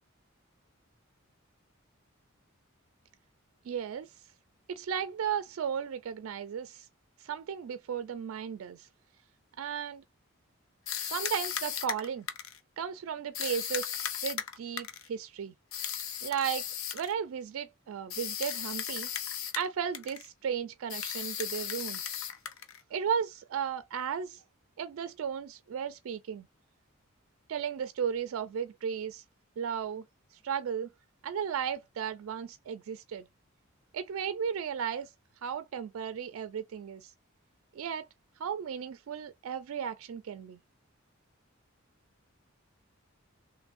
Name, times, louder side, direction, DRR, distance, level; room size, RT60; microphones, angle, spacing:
voice 1, 3.7-4.1 4.7-6.9 7.2-8.9 9.6-10.0 11.0-12.3 12.8-15.5 16.2-16.6 16.9-19.1 19.5-22.1 22.9-24.4 24.8-26.5 27.5-29.2 29.6-30.0 30.4-30.9 31.2-33.3 33.9-35.1 35.4-37.1 37.7-38.1 38.4-40.6, right 7 dB, 75° right, 0.3 m, -35 dB
sound 1, 10.9-12.6 13.3-15.1 15.7-17.1 18.1-19.7 19.9-20.3 20.9-22.8, left 9 dB, 75° left, 0.6 m, -36 dB
3.3 x 2.1 x 2.4 m
head